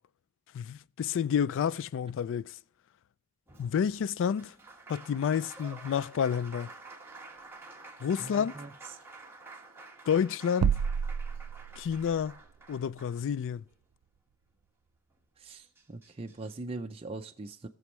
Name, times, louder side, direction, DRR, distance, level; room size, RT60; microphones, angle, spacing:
voice 1, 0.5-2.5 3.6-4.5 4.9-6.7 8.0-8.5 10.1-10.8 11.8-12.3 12.7-13.6, left 7 dB, 60° left, 0.3 m, -29 dB
Applause, 3.5-13.7 15.1-15.2 15.5-16.5, right 3 dB, 10° right, 1.5 m, -50 dB
voice 2, 8.2-8.7 15.4-17.7, right 2 dB, 25° right, 0.5 m, -41 dB
sound 1, 10.6-12.2, right 7 dB, 80° right, 0.3 m, -29 dB
21.0 x 7.0 x 3.1 m
head